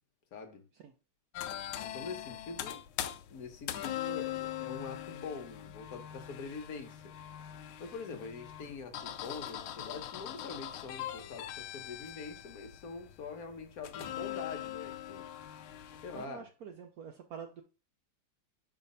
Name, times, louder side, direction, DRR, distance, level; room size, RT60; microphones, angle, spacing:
voice 1, 0.3-0.6 1.8-2.8 3.3-7.0 7.8-15.3 16.0-16.5, left 4 dB, 55° left, 1.2 m, -44 dB
sound 1, 1.3-16.3, left 12 dB, 80° left, 1.4 m, -42 dB
voice 2, 16.1-17.6, right 7 dB, 80° right, 0.8 m, -46 dB
5.7 x 3.3 x 5.3 m
omnidirectional pair, 2.3 m